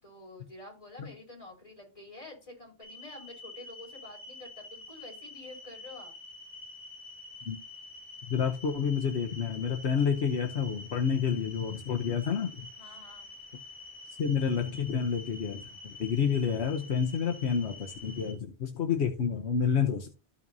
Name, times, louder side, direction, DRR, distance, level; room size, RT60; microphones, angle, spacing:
voice 1, 0.0-6.1 12.8-13.3, left 2 dB, 30° left, -2 dB, 4.4 m, -48 dB
sound 1, 2.8-18.3, left 2 dB, 25° right, 4.5 m, -47 dB
voice 2, 8.3-12.5 14.2-20.1, left 7 dB, 80° left, 4 dB, 1.2 m, -29 dB
13.5 x 5.7 x 2.7 m, 0.29 s
omnidirectional pair, 1.1 m